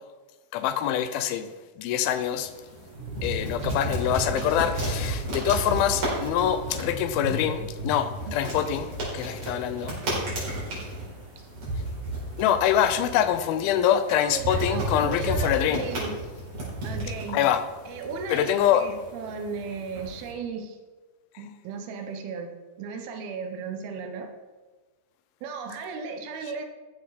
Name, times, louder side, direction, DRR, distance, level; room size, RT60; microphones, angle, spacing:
voice 1, 0.5-1.5 1.8-2.5 3.2-10.0 12.4-15.8 17.3-17.6 18.3-18.9, left 10 dB, 80° left, 2.4 m, -25 dB
sound 1, 2.1-20.3, right 1 dB, 50° right, 5.9 m, -34 dB
sound 2, 2.9-10.4 10.6-10.8, equal, 25° right, 1.8 m, -38 dB
voice 2, 14.1-16.2 16.8-17.4 17.9-20.8 21.4-24.3 25.4-26.7, right 5 dB, 80° right, 3.1 m, -36 dB
14.5 x 9.8 x 4.2 m
omnidirectional pair, 4.4 m